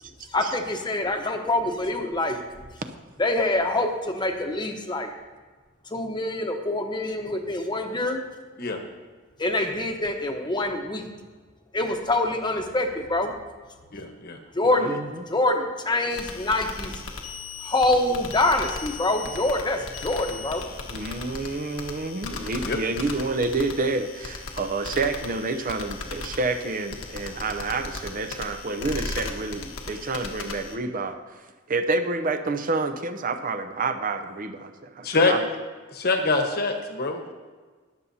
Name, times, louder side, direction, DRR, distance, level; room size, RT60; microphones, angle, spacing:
voice 1, 0.3-2.4 3.2-5.1 5.9-8.2 9.4-11.1 11.7-13.3 14.5-14.9 15.3-17.0 17.6-20.7, left 2 dB, 20° left, 4 dB, 1.0 m, -25 dB
voice 2, 13.9-14.4 22.6-22.8 35.0-35.3 35.9-37.3, left 3 dB, 50° left, 3 dB, 1.2 m, -24 dB
voice 3, 14.7-15.1 20.9-31.2 31.7-35.4, right 3 dB, 40° right, 7 dB, 0.7 m, -28 dB
sound 1, 16.1-30.8, left 3 dB, 85° left, 1.3 m, -37 dB
21.5 x 7.1 x 2.8 m, 1.4 s
head